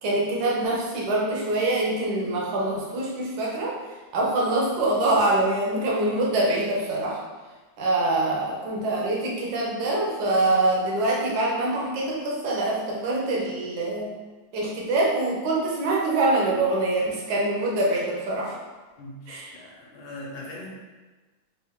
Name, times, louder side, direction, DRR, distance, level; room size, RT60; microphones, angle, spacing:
voice 1, 0.0-3.8 4.1-7.2 7.8-14.1 14.5-18.6 19.3-19.6, right 2 dB, 60° right, -4 dB, 1.3 m, -24 dB
voice 2, 19.5-20.7, left 2 dB, 75° left, -4 dB, 1.6 m, -39 dB
4.3 x 2.5 x 3.6 m, 1.3 s
omnidirectional pair, 2.2 m